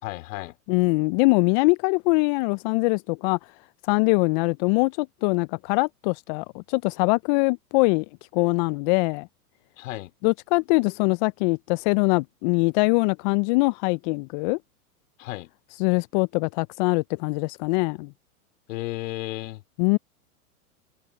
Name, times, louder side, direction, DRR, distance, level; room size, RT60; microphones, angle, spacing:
voice 1, 0.0-0.6 9.8-10.1 15.2-15.5 18.7-19.6, left 19 dB, 60° left, 4.3 m, -33 dB
voice 2, 0.7-3.4 3.9-8.1 8.3-9.3 10.2-14.6 15.8-18.1 19.8-20.0, left 28 dB, 35° left, 0.4 m, -23 dB
hypercardioid pair, 110°, 45 cm